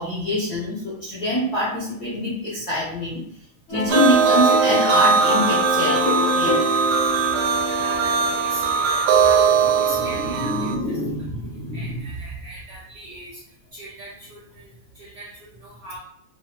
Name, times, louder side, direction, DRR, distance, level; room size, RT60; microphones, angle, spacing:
voice 1, 0.0-3.2 3.7-6.7 9.6-12.1, left 1 dB, 70° left, -7 dB, 0.9 m, -25 dB
sound 1, 3.7-8.8, left 2 dB, 85° left, 2.7 m, -26 dB
sound 2, 3.9-10.8, right 6 dB, 85° right, 1.3 m, -20 dB
voice 2, 7.4-11.0 11.7-13.4 13.7-16.0, right 1 dB, 65° right, -9 dB, 1.1 m, -40 dB
5.4 x 2.3 x 2.9 m, 0.70 s
omnidirectional pair, 3.3 m